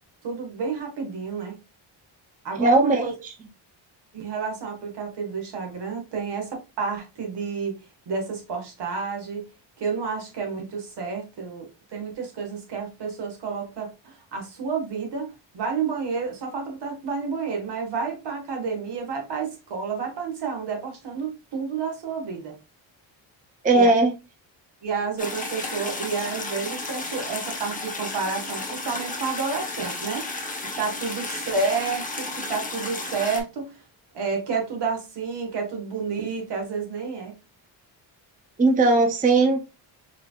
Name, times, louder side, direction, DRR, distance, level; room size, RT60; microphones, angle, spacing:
voice 1, 0.2-1.6 2.4-3.1 4.1-7.7 8.0-9.5 9.8-22.6 23.7-23.9 24.8-30.3 30.8-33.8 34.1-37.3, right 5 dB, 55° right, 1.6 m, -30 dB
voice 2, 2.6-3.3 23.6-24.1 38.6-39.6, right 2 dB, 20° right, 0.5 m, -19 dB
sound 1, 25.2-33.4, left 2 dB, 15° left, 0.9 m, -33 dB
4.7 x 3.4 x 2.4 m
cardioid pair, 125°, 47 cm